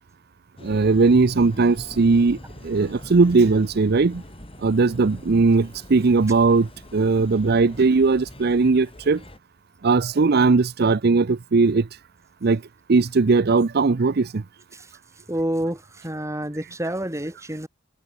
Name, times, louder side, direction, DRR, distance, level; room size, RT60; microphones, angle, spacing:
sound 1, 0.6-9.4, left 1 dB, 30° left, 4.1 m, -43 dB
voice 1, 0.6-2.4 2.6-4.2 4.6-9.2 9.8-11.9 12.4-12.6 12.9-14.4, right 4 dB, 55° right, 0.6 m, -19 dB
voice 2, 14.7-17.7, right 1 dB, 15° right, 3.4 m, -29 dB
head